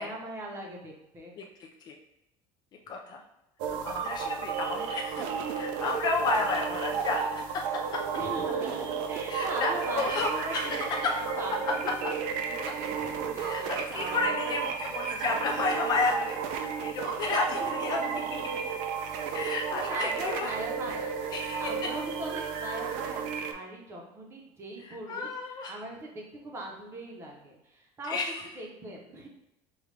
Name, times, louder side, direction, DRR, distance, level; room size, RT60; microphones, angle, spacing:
voice 1, 0.0-1.3 8.1-11.8 12.0-14.8 15.1-15.5 17.2-18.6 19.7-21.2 21.6-25.3 25.7-28.2 28.6-29.3, right 1 dB, 20° right, -1 dB, 0.8 m, -40 dB
voice 2, 1.4-1.9 2.9-3.2 3.8-8.0 9.3-11.1 11.7-11.8 12.0-12.1 13.4-18.4 19.3-20.6 21.3-21.9 24.8-25.8 28.0-28.5, left 3 dB, 35° left, 1 dB, 0.4 m, -32 dB
sound 1, 3.6-23.5, right 6 dB, 70° right, 0.5 m, -33 dB
5.1 x 2.3 x 3.2 m, 0.89 s
cardioid pair, 165°, 13 cm